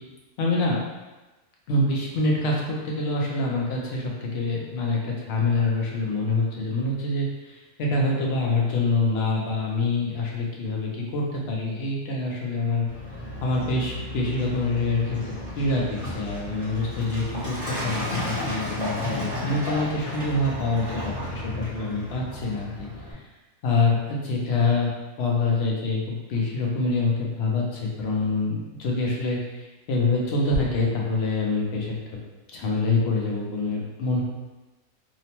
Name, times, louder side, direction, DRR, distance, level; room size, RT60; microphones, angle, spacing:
voice 1, 0.4-0.8 1.7-12.9 13.4-23.2 23.6-24.9 25.2-32.0 32.5-34.2, left 3 dB, 60° left, -2 dB, 0.7 m, -26 dB
Truck, 12.9-23.1, left 1 dB, 30° left, 0.8 m, -33 dB
2.9 x 2.1 x 2.8 m, 1.1 s
omnidirectional pair, 1.5 m